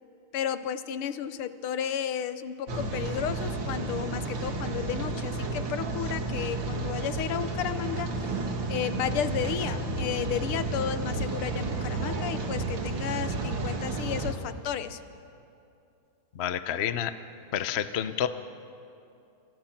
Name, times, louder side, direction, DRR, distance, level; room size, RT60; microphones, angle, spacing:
voice 1, 0.3-8.3 8.7-15.0, left 9 dB, 85° left, 12 dB, 1.8 m, -33 dB
Rain, 2.7-14.3, right 3 dB, 60° right, 2.6 m, -32 dB
voice 2, 16.3-17.1 17.5-18.3, left 10 dB, 65° left, 11 dB, 0.6 m, -29 dB
30.0 x 24.5 x 5.9 m, 2.7 s
omnidirectional pair, 2.4 m